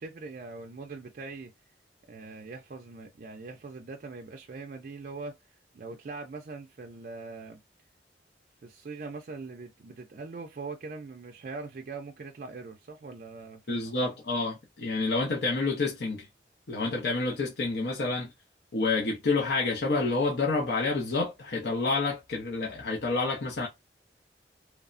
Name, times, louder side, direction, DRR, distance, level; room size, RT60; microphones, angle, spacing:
voice 1, 0.0-1.5 2.1-5.3 5.7-7.6 8.6-14.1, right 3 dB, 50° right, 0.4 m, -42 dB
voice 2, 13.7-16.3 16.7-18.3 18.7-23.7, left 3 dB, 65° left, 0.6 m, -28 dB
3.1 x 2.0 x 2.4 m
head